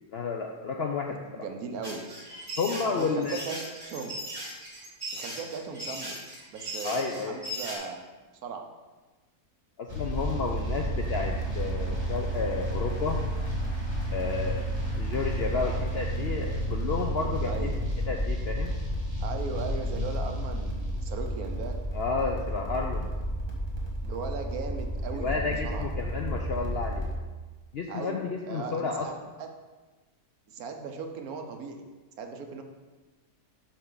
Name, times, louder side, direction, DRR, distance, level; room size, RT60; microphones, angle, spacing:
voice 1, 0.1-1.4 2.6-3.4 6.8-7.4 9.8-13.2 14.1-14.7 15.0-17.7 18.1-18.7 21.9-23.1 25.1-27.1 27.7-29.1, left 4 dB, 65° left, 1 dB, 0.6 m, -31 dB
voice 2, 1.4-2.1 2.8-3.6 3.8-4.2 5.1-6.2 6.5-8.1 8.4-8.7 15.5-15.8 17.4-17.8 19.2-21.8 24.0-25.9 27.9-29.5 30.5-31.8 32.2-32.6, right 5 dB, 75° right, 4 dB, 1.2 m, -38 dB
sound 1, 1.8-7.8, equal, 40° right, 2.7 m, -38 dB
sound 2, 9.9-27.2, right 1 dB, 20° right, 1.3 m, -31 dB
7.6 x 5.7 x 3.8 m, 1.2 s
omnidirectional pair, 1.6 m